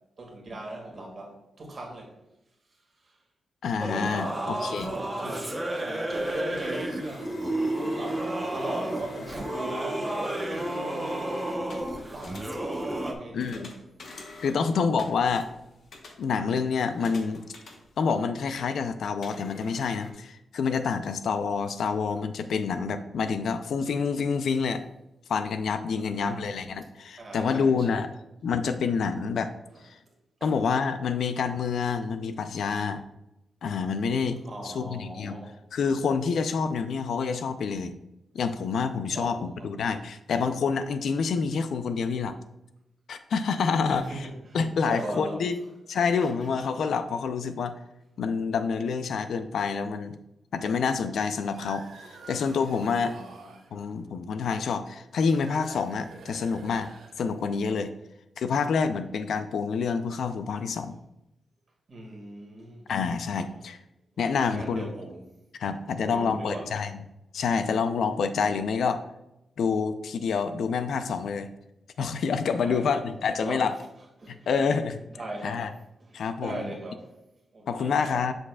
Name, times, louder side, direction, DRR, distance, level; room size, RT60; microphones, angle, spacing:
voice 1, 0.2-2.2 3.0-3.2 4.2-7.4 7.8-8.3 8.5-13.7 25.9-26.6 27.2-28.0 29.7-29.8 30.4-30.6 34.4-35.6 39.1-39.7 43.9-44.6 44.8-45.4 46.2-46.3 52.9-53.5 61.9-62.8 64.5-65.2 65.9-66.7 72.6-73.0 73.4-73.6 74.2-74.5 75.1-75.7 76.0-77.1 77.5-78.2, right 1 dB, 40° right, -1 dB, 1.9 m, -39 dB
voice 2, 3.6-4.9 13.3-13.7 14.4-15.5 16.2-17.4 18.0-24.8 25.3-28.1 28.4-29.5 30.4-33.0 33.6-34.4 34.6-35.4 35.7-38.0 38.3-42.4 43.1-44.3 44.5-45.5 45.9-47.7 48.2-50.2 50.5-53.2 53.7-56.9 57.2-57.9 58.4-61.0 62.9-63.8 64.2-64.9 65.6-66.9 67.3-69.0 69.6-71.5 72.0-73.7 74.3-75.0 75.4-75.7 76.1-76.7 77.7-78.3, left 5 dB, 75° left, 10 dB, 0.5 m, -27 dB
Singing / Musical instrument, 3.8-13.1, right 1 dB, 10° right, 0.8 m, -31 dB
sound 1, 6.1-18.4 19.2-20.1, left 2 dB, 60° left, 1.1 m, -46 dB
sound 2, 51.3-53.7 55.1-57.6, right 4 dB, 80° right, 0.8 m, -48 dB
7.3 x 6.4 x 2.3 m, 0.90 s
wide cardioid pair, 135°, 0 cm